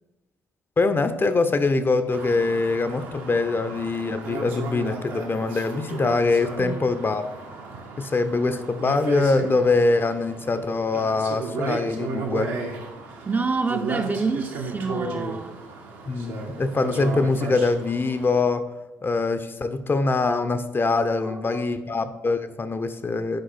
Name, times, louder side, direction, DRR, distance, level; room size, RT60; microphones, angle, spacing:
voice 1, 0.8-7.3 8.0-12.6 16.1-18.7 19.0-23.4, left 3 dB, 30° left, 0.6 m, -23 dB
sound 1, 2.1-18.4, right 3 dB, 70° right, 1.3 m, -34 dB
voice 2, 13.3-15.6 21.5-21.6, right 4 dB, 25° right, 0.6 m, -27 dB
8.6 x 5.3 x 4.1 m
figure-of-eight pair, 45°, 8 cm